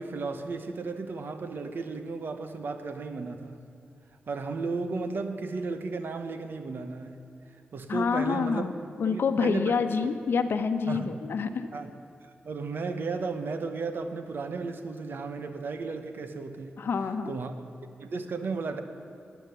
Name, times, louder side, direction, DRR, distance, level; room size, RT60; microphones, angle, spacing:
voice 1, 0.0-3.6 4.3-7.2 7.7-8.7 9.0-10.1 10.9-11.2 11.7-11.9 12.4-16.8 17.3-17.5 18.0-18.8, right 4 dB, 65° right, 8 dB, 1.0 m, -34 dB
voice 2, 7.9-8.7 9.0-11.7 16.8-17.4, left 5 dB, 70° left, 9 dB, 0.8 m, -27 dB
12.5 x 9.5 x 9.3 m, 2.5 s
wide cardioid pair, 110°, 4 cm